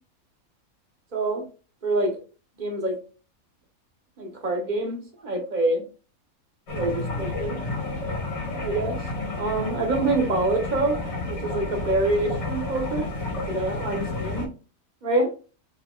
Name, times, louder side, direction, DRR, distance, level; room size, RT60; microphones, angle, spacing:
voice 1, 1.1-1.4 1.8-2.2 2.6-3.0 4.2-5.8 6.7-7.6 8.6-9.0 9.3-11.0 11.2-13.1 13.5-14.5 15.0-15.3, right 2 dB, 35° right, 2 dB, 0.9 m, -26 dB
sound 1, 6.7-14.5, left 2 dB, 50° left, 1.6 m, -31 dB
4.0 x 3.7 x 2.3 m, 0.34 s
omnidirectional pair, 1.5 m